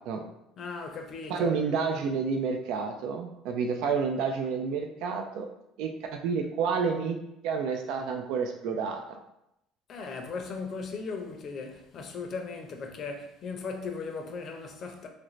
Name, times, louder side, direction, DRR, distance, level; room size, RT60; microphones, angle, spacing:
voice 1, 0.6-1.5 9.9-15.1, left 4 dB, 50° left, 0.5 m, -37 dB
voice 2, 1.3-5.5 5.8-7.2 7.4-9.0, right 5 dB, 75° right, 0.3 m, -29 dB
3.1 x 2.5 x 3.0 m
supercardioid pair, 105°, 0 cm